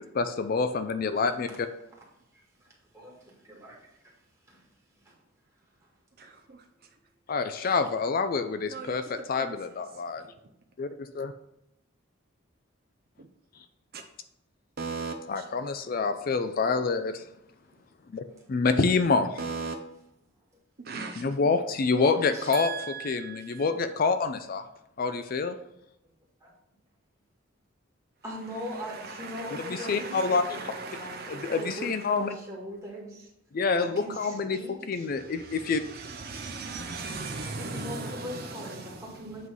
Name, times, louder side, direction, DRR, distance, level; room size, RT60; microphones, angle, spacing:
voice 1, 0.0-1.7 7.3-10.2 10.8-11.3 15.3-17.2 18.1-19.4 21.2-22.7 23.0-24.6 25.0-25.6 29.7-30.7 31.3-32.4 33.5-35.8, left 4 dB, 45° left, 9 dB, 0.4 m, -27 dB
voice 2, 2.3-4.2 4.5-4.7 5.0-5.2 18.4-18.5 21.9-22.5 26.4-26.5 28.2-33.3 33.8-35.1 36.6-36.7 37.6-39.5, equal, 15° right, -3 dB, 1.8 m, -41 dB
voice 3, 6.2-6.6 7.6-7.8 8.7-9.5 10.2-10.3 13.2-13.3 14.8-15.1 19.4-19.7 20.8-21.3 22.5-23.7 28.6-32.2 35.1-39.4, right 4 dB, 50° right, 4 dB, 0.5 m, -38 dB
8.1 x 3.2 x 5.5 m, 0.82 s
head